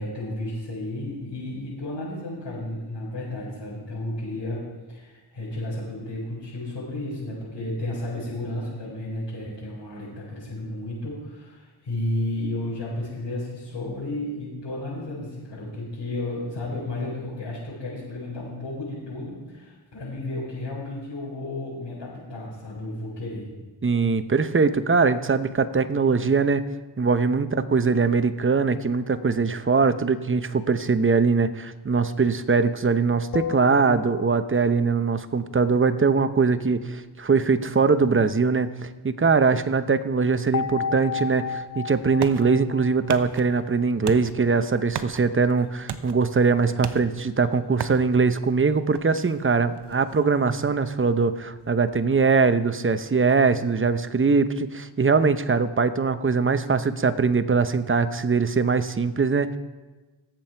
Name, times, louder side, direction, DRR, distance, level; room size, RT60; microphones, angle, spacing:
voice 1, 0.0-23.5, left 1 dB, 65° left, -8 dB, 5.0 m, -33 dB
voice 2, 23.8-26.6 27.0-59.6, right 4 dB, 25° right, 11 dB, 0.9 m, -22 dB
sound 1, 33.3-34.9 40.5-43.9, left 6 dB, 35° left, 0.5 m, -33 dB
sound 2, 41.5-52.9, right 7 dB, 55° right, 0.9 m, -40 dB
17.5 x 7.7 x 4.6 m, 1.2 s
cardioid pair, 55°, 47 cm